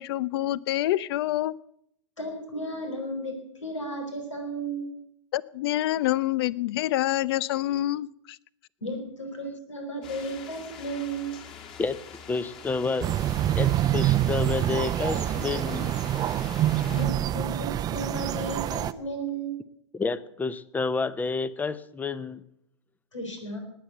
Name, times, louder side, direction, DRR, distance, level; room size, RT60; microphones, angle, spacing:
voice 1, 0.0-1.5 5.3-8.4, left 14 dB, 55° left, 0.6 m, -27 dB
voice 2, 2.2-3.3 3.6-4.9 8.8-11.4 16.9-19.6 23.1-23.6, right 2 dB, 90° left, 4.1 m, -34 dB
sound 1, 10.0-17.1, left 7 dB, 35° left, 3.0 m, -45 dB
voice 3, 12.3-13.1 13.6-15.9 19.9-22.4, left 4 dB, 10° left, 0.8 m, -29 dB
sound 2, 13.0-18.9, right 12 dB, 25° right, 0.6 m, -26 dB
19.0 x 8.7 x 7.8 m
hypercardioid pair, 110°, 15 cm